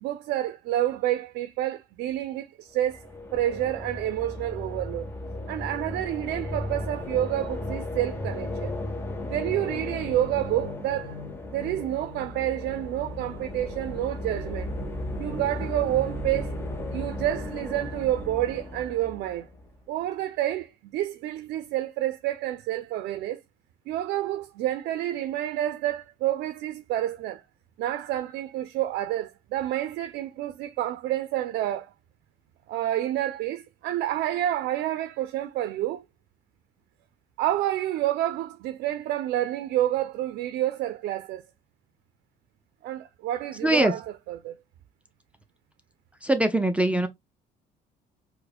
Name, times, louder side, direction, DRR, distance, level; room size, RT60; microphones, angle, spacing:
voice 1, 0.0-3.0 3.3-5.1 5.5-8.7 9.3-11.2 11.5-14.7 15.2-16.5 16.9-19.5 19.9-23.4 23.9-27.4 27.8-31.9 32.7-36.0 37.4-41.4 42.8-44.0 44.3-44.5, right 13 dB, 80° right, 0.4 m, -29 dB
sound 1, 2.8-19.8, left 1 dB, 15° left, 0.7 m, -35 dB
voice 2, 43.6-43.9 46.2-47.1, right 1 dB, 5° right, 0.4 m, -22 dB
4.6 x 2.1 x 2.4 m
cardioid pair, 110°, 17 cm